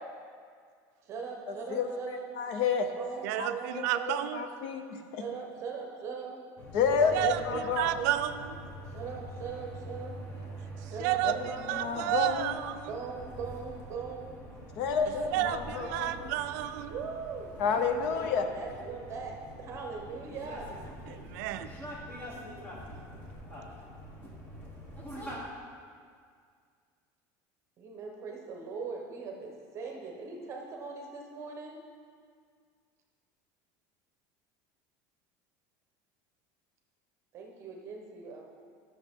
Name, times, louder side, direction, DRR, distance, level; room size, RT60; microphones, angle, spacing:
voice 1, 1.0-2.3 2.9-4.2 5.2-6.4 7.0-8.1 8.9-10.2 10.8-12.3 12.9-14.5 15.0-16.3 16.9-18.2 18.5-20.7 27.8-31.8 37.3-38.4, right 5 dB, 30° right, 1 dB, 0.9 m, -40 dB
voice 2, 1.7-2.9 3.4-3.5 4.1-5.2 6.7-7.9 11.2-11.4 11.7-12.5 14.8-16.1 17.6-18.5, left 6 dB, 60° left, 7 dB, 0.7 m, -30 dB
voice 3, 3.2-4.5 7.1-8.4 10.8-12.9 15.3-16.9 21.1-21.7, right 13 dB, 80° right, 10 dB, 0.4 m, -31 dB
sound 1, 6.6-25.4, equal, 20° left, 1.2 m, -45 dB
10.5 x 6.5 x 3.6 m, 2.1 s
cardioid pair, 170°, 9 cm